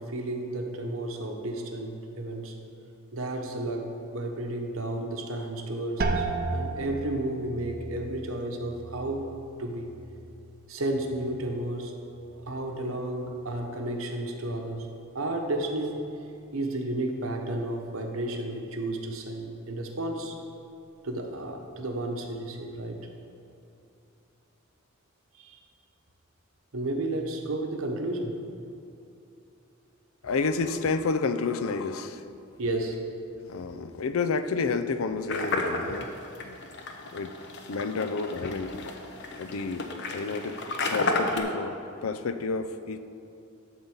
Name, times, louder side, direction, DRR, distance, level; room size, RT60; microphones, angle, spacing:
voice 1, 0.0-2.5 3.1-9.3 9.6-9.9 10.7-12.0 12.2-14.9 15.1-16.0 16.5-20.4 21.0-23.0 25.3-25.6 26.7-28.4 32.6-33.1, right 1 dB, 80° right, 3 dB, 1.0 m, -32 dB
sound 1, 6.0-11.6 12.0-12.7 13.2-13.6, right 2 dB, 50° right, 0.7 m, -35 dB
voice 2, 30.2-32.2 33.5-36.6 37.1-37.4 37.7-39.0 39.3-40.6 40.9-43.0, left 4 dB, 80° left, 11 dB, 0.5 m, -30 dB
sound 2, 35.3-41.4, left 3 dB, 60° left, 0.9 m, -32 dB
12.0 x 4.0 x 7.1 m, 2.7 s
head